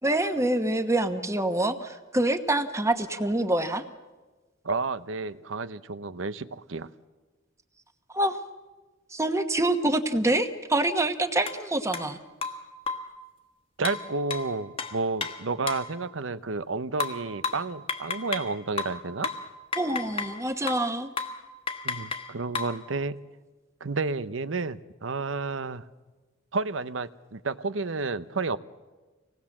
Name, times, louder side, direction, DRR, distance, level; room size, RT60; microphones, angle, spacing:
voice 1, 0.0-3.8 8.1-8.4 9.1-12.2 19.8-21.1, right 1 dB, 15° right, 8 dB, 1.2 m, -26 dB
voice 2, 4.6-6.9 13.8-19.3 21.8-23.2 23.8-25.8 26.5-28.6, right 3 dB, 90° right, 15 dB, 0.8 m, -31 dB
sound 1, 11.5-11.6 11.9-12.1 12.4-13.2 13.9-15.9 17.0-18.5 18.8-20.4 20.7-20.9 21.2-21.4 21.7-22.8, left 4 dB, 30° left, 1.5 m, -33 dB
25.5 x 19.0 x 7.3 m, 1.2 s
head